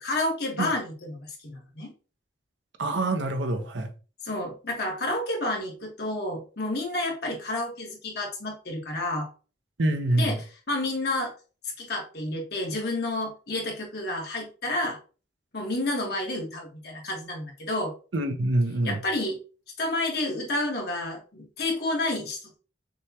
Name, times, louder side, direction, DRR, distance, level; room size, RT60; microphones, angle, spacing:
voice 1, 0.0-1.9 4.2-9.3 10.1-11.3 11.8-15.0 15.5-17.9 18.8-19.4 19.8-22.6, left 2 dB, 60° left, 1.4 m, -30 dB
voice 2, 2.8-3.9 9.8-10.4 18.1-19.0, right 2 dB, 90° right, 0.8 m, -25 dB
6.2 x 2.3 x 2.8 m
head